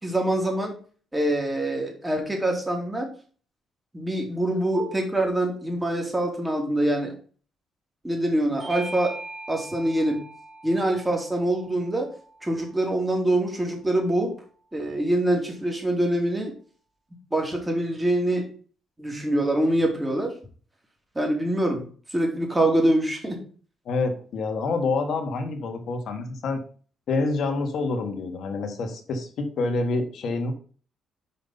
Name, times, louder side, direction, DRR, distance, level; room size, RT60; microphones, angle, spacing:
voice 1, 0.0-0.7 1.1-3.1 3.9-7.1 8.0-9.1 9.5-10.2 10.6-12.1 12.4-14.3 14.7-16.5 17.3-18.5 19.0-20.3 21.1-21.9 22.1-23.4, right 1 dB, 15° right, 1 dB, 2.6 m, -24 dB
Bell / Doorbell, 8.6-13.4, right 2 dB, 50° right, 3.1 m, -41 dB
voice 2, 23.8-26.6 27.1-30.5, left 3 dB, 65° left, 4 dB, 1.6 m, -27 dB
5.6 x 5.1 x 5.5 m, 0.42 s
cardioid pair, 90°, 0 cm